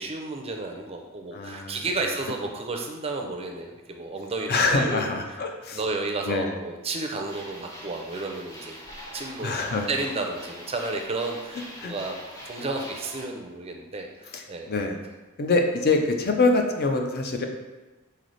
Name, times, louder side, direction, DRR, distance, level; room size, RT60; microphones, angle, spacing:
voice 1, 0.0-5.4 5.7-8.8 9.1-9.6 9.9-12.2 12.4-14.7, right 3 dB, 25° right, 2 dB, 0.4 m, -32 dB
voice 2, 1.3-2.1 4.5-5.8 6.3-6.6 9.4-9.9 11.8-11.9 14.3-15.0 15.4-17.4, left 3 dB, 45° left, 4 dB, 0.5 m, -25 dB
sound 1, 7.3-13.2, equal, 15° left, 0.8 m, -43 dB
4.0 x 3.2 x 3.9 m, 1.1 s
head